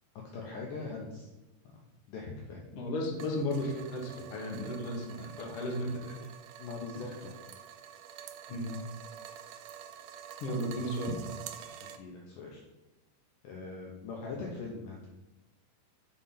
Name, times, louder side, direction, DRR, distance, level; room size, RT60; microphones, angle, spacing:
voice 1, 0.3-1.3 2.1-2.7 6.6-7.4 10.7-11.2 12.0-12.6 13.4-15.1, left 4 dB, 90° left, -1 dB, 1.8 m, -41 dB
voice 2, 2.7-6.2 8.5-8.7 10.4-11.1, equal, 75° left, -1 dB, 1.3 m, -34 dB
sound 1, 3.1-12.0, right 9 dB, 85° right, 2.1 m, -48 dB
7.1 x 4.3 x 5.6 m, 1.1 s
omnidirectional pair, 4.9 m